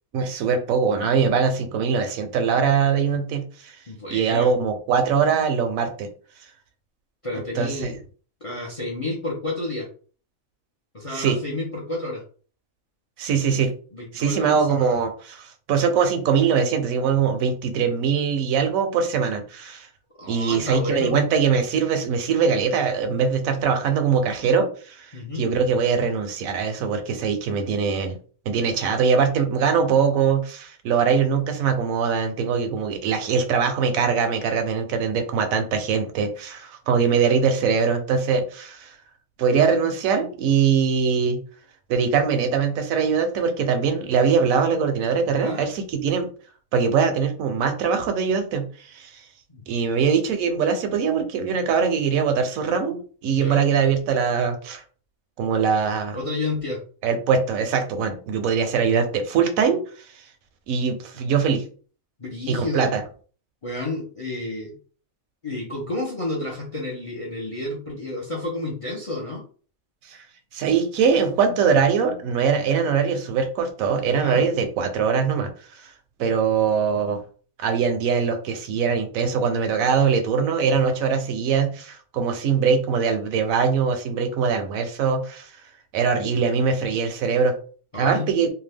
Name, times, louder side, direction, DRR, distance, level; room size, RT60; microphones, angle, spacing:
voice 1, 0.1-3.8 4.1-6.1 7.6-7.9 11.1-11.4 13.2-13.7 14.1-19.9 20.3-28.2 28.5-39.0 39.4-41.4 41.9-46.3 46.7-49.2 49.7-54.8 55.4-56.2 57.0-59.8 60.7-61.6 62.5-63.0 70.1-70.2 70.5-75.9 76.2-77.2 77.6-85.5 85.9-87.5 88.0-88.5, right 6 dB, 80° right, 6 dB, 1.0 m, -22 dB
voice 2, 3.9-4.5 7.2-7.9 8.4-9.9 10.9-12.2 13.9-15.0 20.2-21.2 25.1-25.5 45.2-45.7 49.5-50.0 53.4-53.6 56.1-56.8 62.2-62.9 63.6-64.7 65.4-69.4 74.1-74.5 87.9-88.3, left 2 dB, 40° left, -1 dB, 0.5 m, -31 dB
2.7 x 2.2 x 3.4 m, 0.41 s
omnidirectional pair, 1.4 m